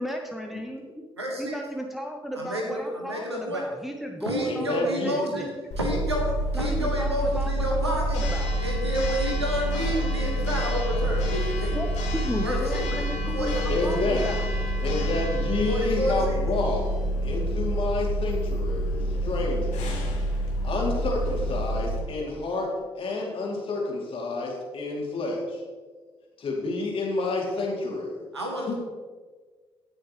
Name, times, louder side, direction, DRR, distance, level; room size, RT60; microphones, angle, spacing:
voice 1, 0.0-1.0 1.4-5.5 6.5-8.6 11.7-11.9 12.2-14.4, equal, ahead, 2 dB, 0.9 m, -34 dB
voice 2, 1.2-1.6 2.3-3.6 4.3-5.5 5.8-8.2 8.6-11.8 12.4-12.9 13.3-14.1 15.6-16.4 28.3-28.7, equal, 90° right, 0 dB, 1.3 m, -30 dB
voice 3, 4.4-5.2 13.7-14.3 14.8-16.9 17.2-20.0 20.6-25.6 26.4-28.2 28.7-28.8, left 2 dB, 40° left, -2 dB, 2.8 m, -29 dB
Church bell, 5.7-22.0, equal, 60° left, 2.0 m, -27 dB
17.0 x 6.4 x 3.1 m, 1.5 s
figure-of-eight pair, 45°, 14 cm